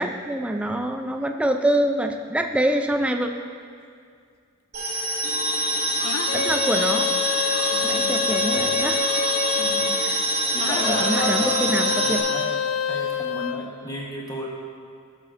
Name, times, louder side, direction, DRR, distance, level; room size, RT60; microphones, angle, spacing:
voice 1, 0.0-3.3 6.3-7.1 7.4-9.1 10.0-10.2 10.8-12.2, right 1 dB, 5° right, 5 dB, 0.4 m, -25 dB
sound 1, 4.7-12.2, right 1 dB, 50° right, 2.2 m, -25 dB
sound 2, 6.0-10.1 10.6-13.6, left 7 dB, 80° left, 0.4 m, -27 dB
voice 2, 7.7-8.1 9.6-10.0 10.5-11.6 11.9-12.5 12.9-14.5, left 1 dB, 20° left, -3 dB, 1.1 m, -32 dB
12.5 x 7.4 x 2.5 m, 2.2 s
head